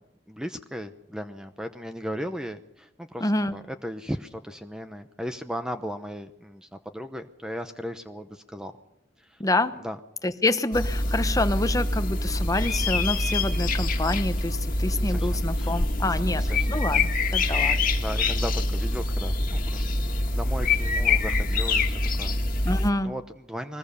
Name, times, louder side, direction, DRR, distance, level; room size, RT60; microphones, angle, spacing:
voice 1, 0.3-8.7 9.2-9.4 9.8-10.0 15.0-15.8 16.1-17.1 17.4-17.6 18.0-20.0 20.3-22.7 23.0-23.8, equal, 5° right, 8 dB, 0.8 m, -37 dB
voice 2, 3.2-3.6 9.4-9.7 10.2-17.8 22.6-23.1, left 2 dB, 20° left, 10 dB, 1.0 m, -27 dB
sound 1, 10.7-22.9, left 2 dB, 50° left, 2.0 m, -25 dB
22.0 x 20.0 x 6.9 m, 0.81 s
head